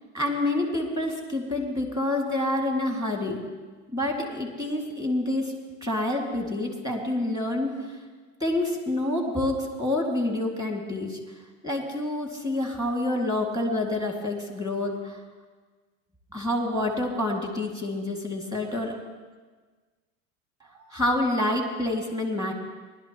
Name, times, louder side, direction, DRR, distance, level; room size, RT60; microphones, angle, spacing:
voice 1, 0.1-3.4 3.9-5.5 5.8-8.0 8.4-11.2 11.6-15.2 16.3-19.0 20.9-22.5, left 1 dB, 10° right, 1 dB, 2.1 m, -27 dB
19.5 x 12.0 x 3.0 m, 1.4 s
supercardioid pair, 120°, 38 cm